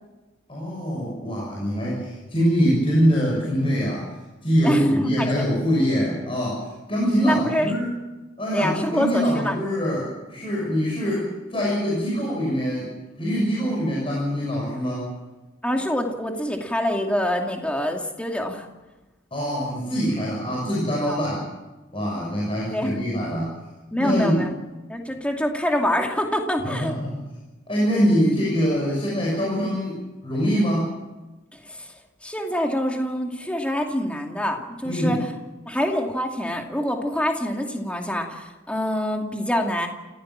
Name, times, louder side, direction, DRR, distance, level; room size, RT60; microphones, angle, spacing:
voice 1, 0.5-4.1 4.4-7.9 8.4-12.9 13.2-15.1 19.3-21.5 21.9-23.6 24.0-24.4 26.6-27.2 27.7-31.0 34.8-35.2, equal, 30° left, -5 dB, 6.8 m, -24 dB
voice 2, 4.6-5.5 7.2-7.7 8.5-9.5 15.6-18.7 21.1-21.2 22.7-23.0 23.9-24.5 24.9-26.9 31.5-31.9 32.2-35.3 35.7-39.9, equal, 5° left, 2 dB, 2.6 m, -25 dB
28.5 x 16.0 x 7.5 m, 1.1 s
head